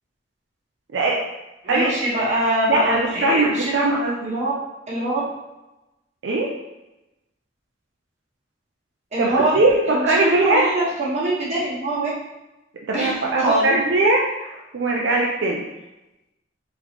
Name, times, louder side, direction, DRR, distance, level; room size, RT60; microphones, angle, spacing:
voice 1, 1.6-3.8 4.2-4.5 4.9-5.2 9.1-9.5 9.8-12.1 12.9-13.7, right 1 dB, 40° right, -8 dB, 1.4 m, -23 dB
voice 2, 2.7-4.3 6.2-6.5 9.2-10.7 12.9-15.6, right 2 dB, 75° right, -2 dB, 0.5 m, -20 dB
3.9 x 3.1 x 3.0 m, 0.99 s
head